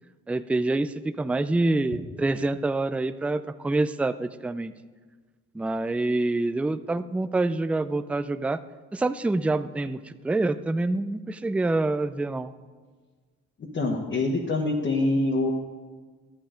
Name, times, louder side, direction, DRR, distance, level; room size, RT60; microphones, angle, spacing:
voice 1, 0.3-4.7 5.5-8.6 8.9-12.5, right 2 dB, 5° right, 12 dB, 0.4 m, -26 dB
voice 2, 13.7-15.5, left 2 dB, 40° left, -2 dB, 1.3 m, -25 dB
11.5 x 8.5 x 5.1 m, 1.4 s
cardioid pair, 90°, 30 cm